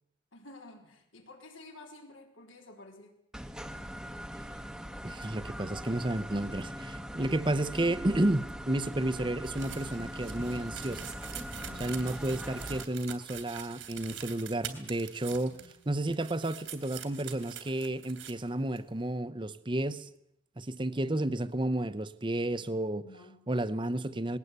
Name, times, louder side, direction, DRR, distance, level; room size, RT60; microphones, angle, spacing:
voice 1, 0.3-3.1 11.6-12.0 15.3-15.7 23.0-23.4, left 2 dB, 85° left, 4.0 m, -52 dB
sound 1, 3.3-12.8, equal, 5° right, 1.0 m, -41 dB
voice 2, 5.0-11.1 11.8-15.6 15.9-20.1 20.6-23.0 23.5-24.4, right 1 dB, 25° right, 0.8 m, -31 dB
sound 2, 9.4-15.8 16.1-18.3 18.8-18.9, right 10 dB, 75° right, 2.8 m, -45 dB
20.0 x 18.0 x 8.2 m
head